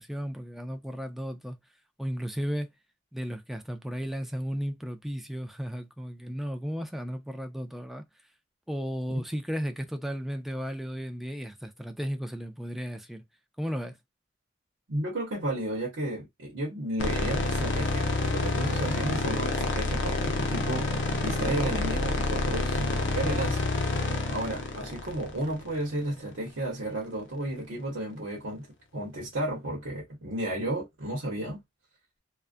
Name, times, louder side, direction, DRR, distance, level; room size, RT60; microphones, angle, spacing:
voice 1, 0.0-1.6 2.0-2.7 3.1-8.0 8.7-13.2 13.6-14.0, equal, ahead, 0.3 m, -34 dB
voice 2, 14.9-20.9 21.2-23.6 23.9-24.0 24.3-28.7 28.9-31.6, right 1 dB, 85° right, 0.9 m, -33 dB
sound 1, 17.0-26.2, left 2 dB, 70° left, 0.6 m, -28 dB
2.4 x 2.1 x 2.4 m
head